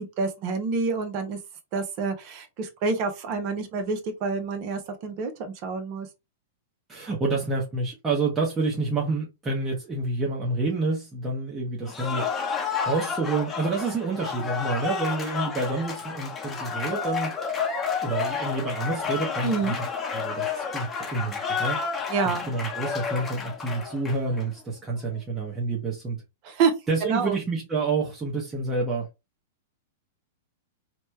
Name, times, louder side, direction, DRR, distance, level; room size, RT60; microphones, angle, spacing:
voice 1, 0.0-1.4 1.7-6.1 19.4-19.8 22.1-22.5 26.4-26.7 27.0-27.3, right 4 dB, 45° right, 0.7 m, -27 dB
voice 2, 6.9-12.3 12.9-17.3 18.0-19.8 20.1-26.2 26.9-29.1, right 3 dB, 15° right, 0.9 m, -28 dB
Cheering / Applause, 11.9-24.5, left 6 dB, 20° left, 0.8 m, -31 dB
3.0 x 2.2 x 3.2 m
hypercardioid pair, 105°, 0 cm